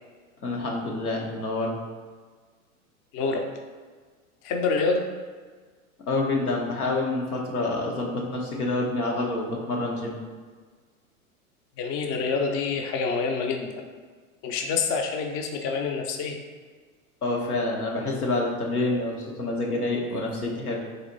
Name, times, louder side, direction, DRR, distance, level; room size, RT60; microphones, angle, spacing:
voice 1, 0.4-1.8 6.1-10.2 17.2-20.8, left 2 dB, 90° left, -1 dB, 1.0 m, -27 dB
voice 2, 4.4-5.0 11.8-13.7 14.4-16.4, left 4 dB, 30° left, 3 dB, 0.5 m, -26 dB
4.0 x 2.9 x 3.9 m, 1.5 s
hypercardioid pair, 95°, 43 cm